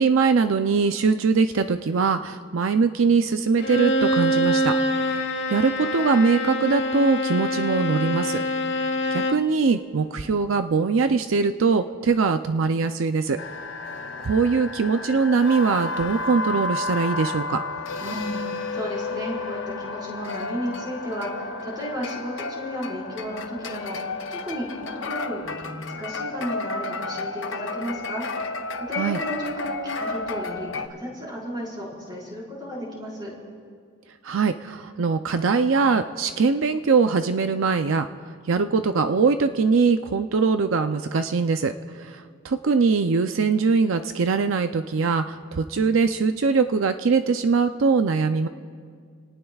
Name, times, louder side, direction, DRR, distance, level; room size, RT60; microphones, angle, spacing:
voice 1, 0.0-5.2 5.5-8.4 9.1-13.4 14.2-17.6 29.0-29.2 34.2-38.1 38.5-41.7 42.0-48.5, right 4 dB, 80° right, 8 dB, 0.5 m, -22 dB
Bowed string instrument, 3.6-9.5, equal, 55° left, 1.3 m, -25 dB
sound 1, 13.4-30.9, left 3 dB, 75° left, 0.9 m, -32 dB
voice 2, 18.0-28.2 28.8-33.3, equal, 20° right, -5 dB, 4.7 m, -33 dB
29.0 x 18.5 x 2.4 m, 2.1 s
head